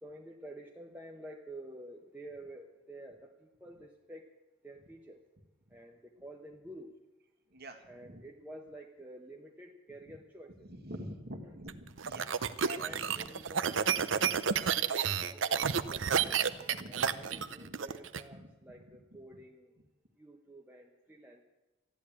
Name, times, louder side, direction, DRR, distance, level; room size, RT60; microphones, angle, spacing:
voice 1, 0.0-4.4 4.6-5.2 5.7-6.9 7.8-10.7 11.4-11.6 12.8-14.4 14.9-16.4 16.8-19.7 20.2-21.4, right 1 dB, 10° right, 0 dB, 0.9 m, -50 dB
voice 2, 7.5-8.2 10.7-13.3 13.7-14.3 16.0-17.7 18.3-18.5, equal, 50° right, 5 dB, 1.7 m, -47 dB
sound 1, 11.7-18.2, right 7 dB, 70° right, 0.7 m, -30 dB
14.0 x 10.5 x 8.6 m, 1.1 s
head